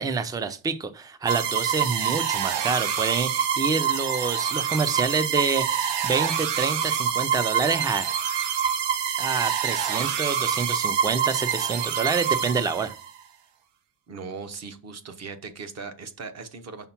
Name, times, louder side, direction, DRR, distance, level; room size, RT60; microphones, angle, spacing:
voice 1, 0.0-8.1 9.2-12.9, right 4 dB, 10° right, 0.3 m, -27 dB
sound 1, 1.3-13.1, right 8 dB, 90° right, 0.8 m, -26 dB
voice 2, 14.1-16.9, right 4 dB, 40° right, 0.8 m, -38 dB
5.7 x 4.3 x 5.7 m
cardioid pair, 170°, 41 cm